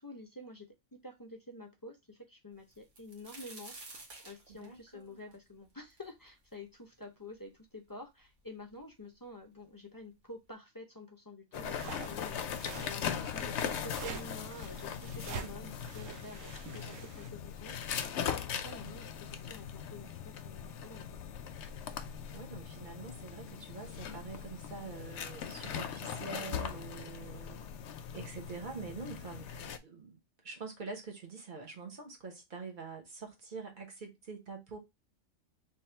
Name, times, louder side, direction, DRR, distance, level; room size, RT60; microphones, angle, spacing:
voice 1, 0.0-4.0 4.2-21.2, left 2 dB, 30° left, 0.3 m, -49 dB
sound 1, 2.7-6.5 7.0-7.1 7.9-8.0 8.2-8.9 9.8-9.9 10.3-10.5, right 3 dB, 70° right, 1.4 m, -51 dB
voice 2, 4.5-5.4 15.3-15.7 18.5-18.9 22.3-27.6 28.1-30.2 30.4-34.8, right 4 dB, 40° right, 1.1 m, -45 dB
sound 2, 11.5-29.8, left 8 dB, 70° left, 0.8 m, -40 dB
sound 3, 11.7-17.3, right 5 dB, 90° right, 1.0 m, -46 dB
3.4 x 2.6 x 4.3 m
omnidirectional pair, 1.3 m